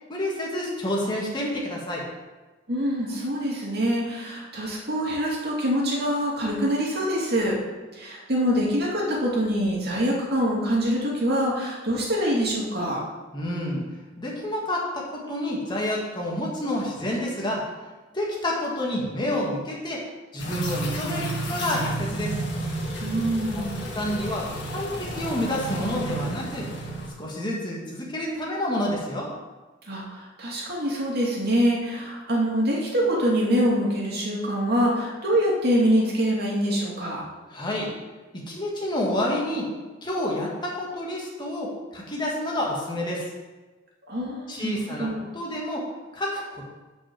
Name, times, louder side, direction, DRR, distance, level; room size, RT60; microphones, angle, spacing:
voice 1, 0.1-2.1 13.3-13.8 14.2-17.7 18.1-20.1 20.3-22.4 23.6-23.7 23.9-26.7 27.2-29.3 37.5-37.9 38.3-39.7 40.0-43.3 44.5-45.9 46.1-46.7, left 1 dB, 25° left, -3 dB, 2.0 m, -29 dB
voice 2, 2.7-7.6 7.9-13.0 23.0-23.9 29.9-37.2 44.1-44.7 45.0-45.2, equal, 55° right, -4 dB, 2.6 m, -25 dB
sound 1, 20.4-27.1, right 1 dB, 65° left, 2.0 m, -31 dB
7.0 x 5.4 x 7.0 m, 1.2 s
head